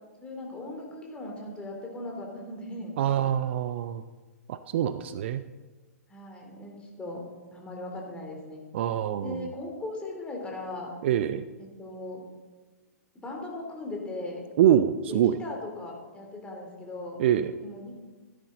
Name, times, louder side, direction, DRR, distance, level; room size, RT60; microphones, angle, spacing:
voice 1, 0.2-3.0 6.1-7.2 7.5-8.6 9.2-10.9 11.6-12.2 13.2-14.4 15.1-17.2 17.6-18.0, left 2 dB, 10° left, 0 dB, 3.1 m, -38 dB
voice 2, 3.0-4.0 4.5-5.4 8.7-9.5 11.0-11.5 14.6-15.4 17.2-17.5, right 10 dB, 45° right, 12 dB, 0.5 m, -25 dB
15.0 x 11.5 x 3.9 m, 1.3 s
figure-of-eight pair, 110°, 9 cm